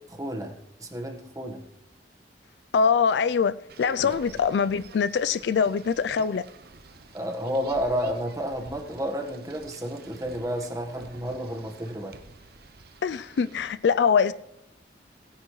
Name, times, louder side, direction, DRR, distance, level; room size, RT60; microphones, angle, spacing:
voice 1, 0.2-0.5 0.8-1.6 4.0-4.2 7.1-12.2, equal, 20° right, 1.3 m, -31 dB
voice 2, 2.7-6.4 13.0-14.3, left 6 dB, 75° left, 0.4 m, -23 dB
sound 1, 3.7-13.7, right 3 dB, 60° right, 0.7 m, -49 dB
sound 2, 3.8-7.7 8.6-8.7, equal, 90° right, 0.9 m, -51 dB
17.0 x 10.0 x 3.1 m
head